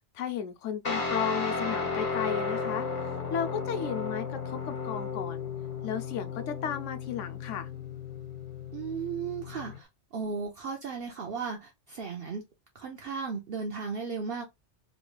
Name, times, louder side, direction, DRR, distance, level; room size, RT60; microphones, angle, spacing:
voice 1, 0.1-5.5 5.8-7.7, left 8 dB, 90° left, 1.0 m, -34 dB
Guitar, 0.8-9.8, left 5 dB, 35° left, 1.1 m, -34 dB
voice 2, 8.7-9.9 10.1-12.4 12.7-14.5, right 5 dB, 60° right, 0.8 m, -35 dB
3.2 x 3.0 x 2.3 m
omnidirectional pair, 1.2 m